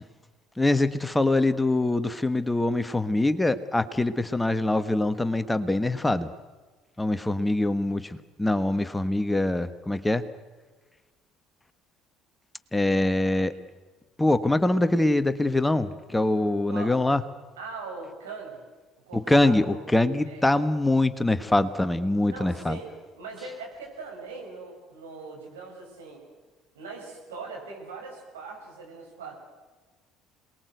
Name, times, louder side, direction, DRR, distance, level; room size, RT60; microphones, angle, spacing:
voice 1, 0.6-6.3 7.0-10.2 12.7-13.5 14.2-17.2 19.1-22.8, left 2 dB, 10° left, 11 dB, 1.4 m, -24 dB
voice 2, 16.7-17.0 17.6-18.6 19.1-19.8 20.3-20.4 22.3-26.2 26.7-29.4, right 4 dB, 85° right, 0 dB, 7.1 m, -41 dB
27.5 x 20.5 x 8.1 m, 1.3 s
hypercardioid pair, 60°, 0 cm